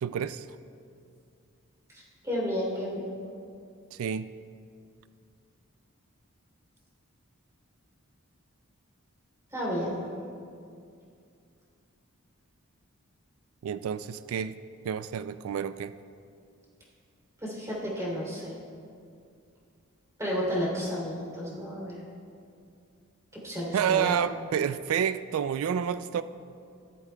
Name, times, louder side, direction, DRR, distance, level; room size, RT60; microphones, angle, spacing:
voice 1, 0.0-0.5 3.9-4.3 13.6-14.5 14.8-15.9 23.7-26.2, right 8 dB, 75° right, 14 dB, 0.3 m, -29 dB
voice 2, 1.9-3.1 9.5-10.0 17.4-18.5 20.2-22.0 23.4-24.1, equal, 15° right, -6 dB, 3.0 m, -32 dB
14.5 x 13.0 x 2.2 m, 2.4 s
head